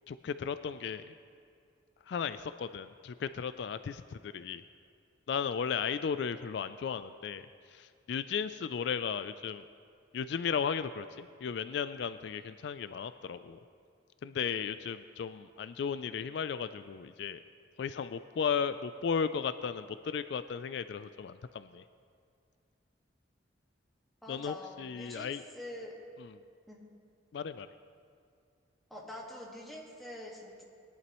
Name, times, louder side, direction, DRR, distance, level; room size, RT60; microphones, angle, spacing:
voice 1, 0.1-1.1 2.1-4.6 5.3-9.6 10.1-13.6 14.2-17.4 17.8-21.8 24.3-25.4 26.2-26.3 27.3-27.7, left 6 dB, 65° left, 12 dB, 0.3 m, -35 dB
voice 2, 24.2-25.9 26.7-27.0 28.9-30.6, left 1 dB, ahead, -4 dB, 1.6 m, -45 dB
20.5 x 11.0 x 3.0 m, 2.4 s
head